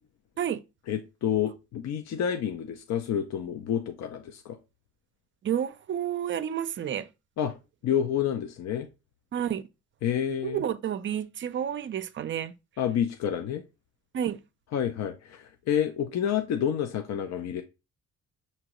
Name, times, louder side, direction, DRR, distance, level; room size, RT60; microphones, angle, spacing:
voice 1, 0.9-4.6 7.4-7.6 7.8-8.9 10.0-10.6 12.8-13.6 14.7-17.6, left 9 dB, 60° left, 0.6 m, -29 dB
voice 2, 5.4-7.1 9.3-9.6 10.4-12.5 14.1-14.4, right 9 dB, 40° right, 0.4 m, -30 dB
6.0 x 2.8 x 2.9 m
cardioid pair, 90°, 30 cm